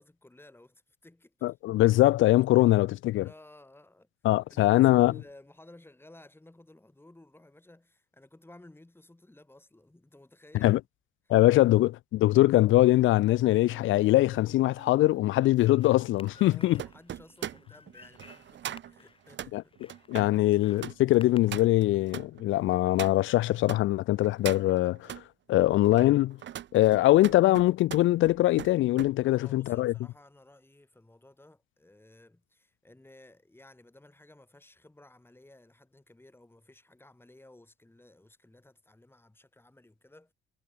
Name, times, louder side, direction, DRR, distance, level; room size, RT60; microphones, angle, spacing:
voice 1, 0.0-1.5 2.6-2.7 3.1-4.1 4.5-10.8 11.2-11.7 16.3-19.8 29.2-40.3, left 1 dB, 10° left, 7.8 m, -55 dB
voice 2, 1.4-3.3 4.2-5.1 10.6-10.8 11.3-16.8 19.5-19.6 20.1-25.1 25.5-26.4 26.7-29.9, left 16 dB, 80° left, 0.5 m, -22 dB
sound 1, 13.2-23.8 24.2-25.3 25.8-29.1 29.5-29.8, right 11 dB, 65° right, 2.0 m, -43 dB
sound 2, 15.6-21.9, left 4 dB, 25° left, 5.7 m, -56 dB
cardioid pair, 90°, 20 cm